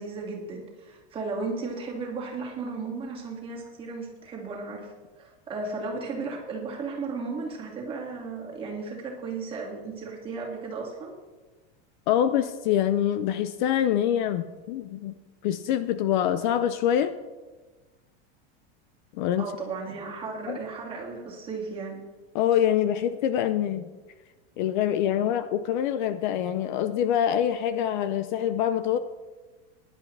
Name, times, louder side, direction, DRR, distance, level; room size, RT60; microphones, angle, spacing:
voice 1, 0.0-4.9 5.2-11.1 19.4-22.0, right 4 dB, 15° right, -2 dB, 2.3 m, -35 dB
voice 2, 12.1-15.1 15.4-17.1 19.1-19.5 20.5-20.6 22.3-23.9 24.6-29.0, left 10 dB, 50° left, 11 dB, 0.5 m, -25 dB
18.5 x 11.0 x 3.3 m, 1.3 s
supercardioid pair, 175°, 32 cm